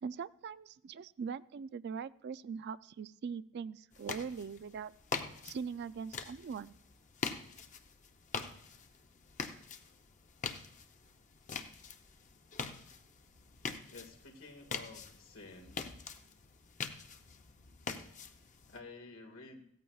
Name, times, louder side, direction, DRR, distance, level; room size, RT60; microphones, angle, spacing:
voice 1, 0.0-4.9 5.4-6.8, right 6 dB, 55° right, 16 dB, 0.3 m, -41 dB
sound 1, 3.9-18.8, left 5 dB, 35° left, 0.6 m, -44 dB
voice 2, 13.9-15.8 18.7-19.6, left 3 dB, 80° left, 2 dB, 1.8 m, -51 dB
16.5 x 14.0 x 2.3 m, 0.71 s
head